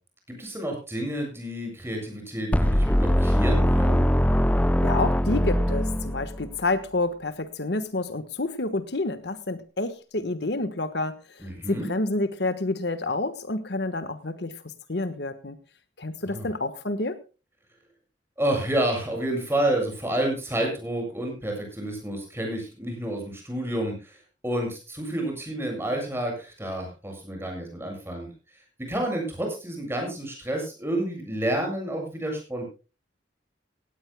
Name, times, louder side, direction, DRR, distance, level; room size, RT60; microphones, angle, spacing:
voice 1, 0.3-4.1 11.4-11.9 16.3-16.5 18.4-24.2 24.4-28.3 28.9-32.7, right 1 dB, 15° right, 2 dB, 7.4 m, -29 dB
sound 1, 2.5-6.5, equal, 10° left, 0.5 m, -22 dB
voice 2, 4.8-15.6 16.0-17.2, left 2 dB, 60° left, 11 dB, 1.3 m, -29 dB
18.0 x 17.5 x 2.2 m, 0.33 s
head